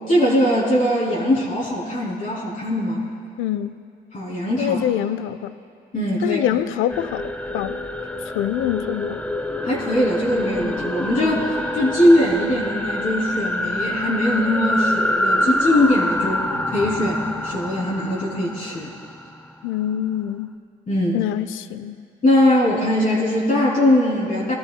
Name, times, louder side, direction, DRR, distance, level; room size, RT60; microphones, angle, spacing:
voice 1, 0.1-3.0 4.1-4.8 5.9-6.4 9.6-18.9 20.9-21.2 22.2-24.5, left 1 dB, 45° left, -6 dB, 3.1 m, -21 dB
voice 2, 3.4-3.8 4.6-5.6 6.2-7.8 8.3-9.2 19.6-20.6 21.1-22.0, left 11 dB, 85° left, 14 dB, 0.5 m, -25 dB
sound 1, 6.9-19.6, left 1 dB, 5° left, 0.7 m, -26 dB
21.0 x 12.5 x 2.2 m, 2.4 s
cardioid pair, 90°, 20 cm